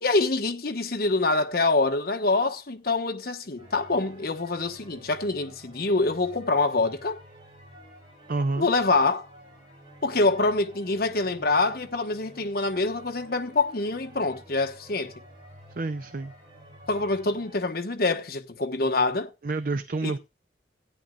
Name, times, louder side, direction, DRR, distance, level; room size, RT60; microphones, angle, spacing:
voice 1, 0.0-7.2 8.6-9.3 10.0-15.1 16.9-19.3 20.0-20.2, left 3 dB, 55° left, 1.3 m, -25 dB
sound 1, 3.6-17.6, equal, 30° right, 5.1 m, -50 dB
voice 2, 8.3-8.7 15.7-16.3 19.4-20.2, right 3 dB, 50° right, 0.6 m, -28 dB
16.0 x 10.0 x 2.4 m
head